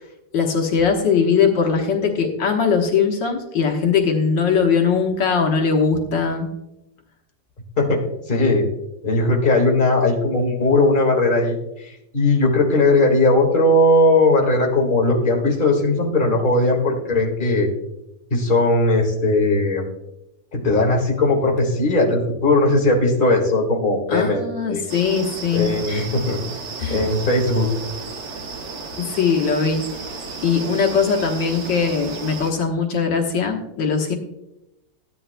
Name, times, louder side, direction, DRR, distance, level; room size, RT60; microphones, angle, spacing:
voice 1, 0.3-6.5 24.1-26.1 26.8-27.1 29.0-29.8 30.4-34.2, left 6 dB, 80° left, 2 dB, 2.0 m, -20 dB
voice 2, 7.8-8.7 9.0-17.7 18.3-19.8 20.5-24.8 25.5-26.4 26.9-27.7, left 2 dB, 25° left, 0 dB, 1.8 m, -18 dB
sound 1, 24.9-32.5, right 4 dB, 75° right, 2.0 m, -33 dB
15.5 x 10.5 x 2.2 m, 0.89 s
omnidirectional pair, 2.0 m